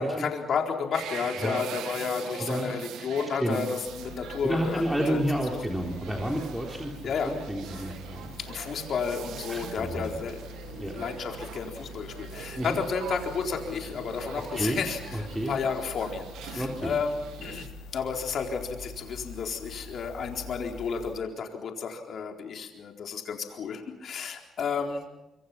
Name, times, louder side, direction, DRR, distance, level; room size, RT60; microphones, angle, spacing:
voice 1, 0.0-5.2 7.0-7.3 8.4-25.0, left 5 dB, 60° left, 2 dB, 4.1 m, -32 dB
sound 1, 0.9-17.7, right 10 dB, 85° right, 1.4 m, -43 dB
voice 2, 2.4-2.7 3.4-3.6 4.4-6.9 7.3-8.3 9.5-10.2 10.8-10.9 12.6-12.8 14.5-14.8 15.1-15.5 16.6-16.9, equal, 5° right, -1 dB, 3.8 m, -30 dB
sound 2, 3.8-21.1, left 3 dB, 90° left, 6.0 m, -45 dB
25.0 x 25.0 x 5.9 m, 0.99 s
cardioid pair, 90°, 0 cm